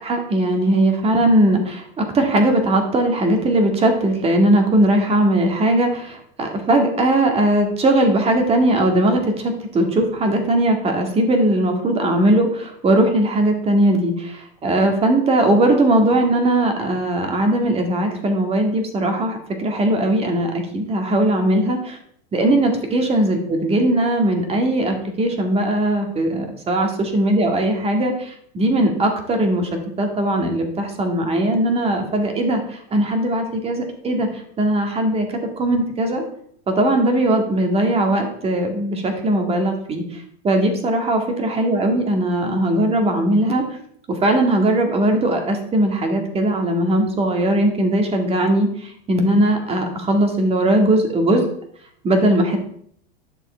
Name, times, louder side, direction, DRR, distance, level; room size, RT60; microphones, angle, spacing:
voice 1, 0.0-22.0 22.3-29.7 30.0-34.3 34.6-36.2 36.8-40.0 40.4-43.6 44.1-48.7 49.1-51.4 52.0-52.6, right 1 dB, 20° right, 3 dB, 2.2 m, -19 dB
11.0 x 6.3 x 4.5 m, 0.64 s
supercardioid pair, 130°, 30 cm